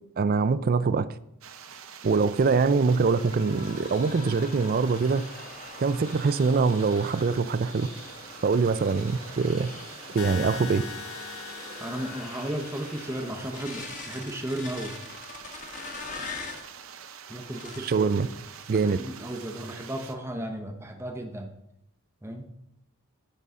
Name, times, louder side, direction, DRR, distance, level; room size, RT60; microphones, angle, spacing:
voice 1, 0.2-1.1 2.0-5.3 5.8-7.9 8.4-9.7 10.1-10.8 17.8-18.3 18.7-19.0, right 4 dB, 40° right, 15 dB, 0.4 m, -23 dB
sound 1, 1.4-20.1, right 7 dB, 65° right, 0.8 m, -46 dB
sound 2, 2.9-16.7 17.4-18.0 18.5-18.8 19.1-19.8, left 4 dB, 35° left, 1.2 m, -43 dB
sound 3, 10.2-14.2, left 5 dB, 65° left, 0.7 m, -42 dB
voice 2, 11.8-15.0 17.3-18.1 18.8-21.5 22.2-22.5, right 1 dB, 10° right, 4 dB, 0.7 m, -34 dB
13.5 x 5.5 x 3.7 m, 0.79 s
head